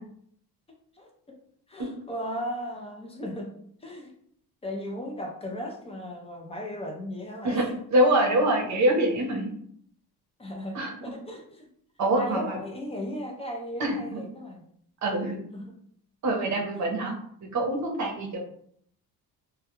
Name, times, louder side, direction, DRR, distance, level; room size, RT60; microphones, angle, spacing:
voice 1, 1.7-3.5 3.8-4.1 4.6-7.8 10.4-11.7 12.2-14.6 15.5-15.8 16.8-16.9, equal, 15° left, 1 dB, 0.4 m, -36 dB
voice 2, 7.9-9.5 10.7-10.9 12.0-12.6 13.8-14.2 15.0-15.4 16.2-17.1 17.4-18.4, right 1 dB, 45° right, 1 dB, 0.7 m, -25 dB
2.2 x 2.2 x 2.9 m, 0.65 s
cardioid pair, 130°, 38 cm